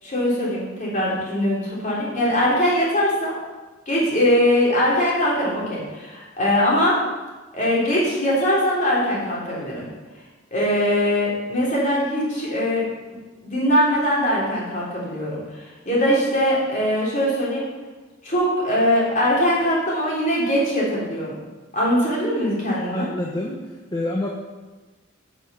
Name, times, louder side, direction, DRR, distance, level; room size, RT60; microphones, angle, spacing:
voice 1, 0.0-3.3 3.9-7.0 7.5-9.9 10.5-12.8 13.4-17.7 18.2-21.3 21.7-23.1, equal, 35° left, -6 dB, 3.6 m, -21 dB
voice 2, 22.9-23.5 23.9-24.3, left 1 dB, 20° left, -1 dB, 0.9 m, -26 dB
10.0 x 6.2 x 6.9 m, 1.2 s
head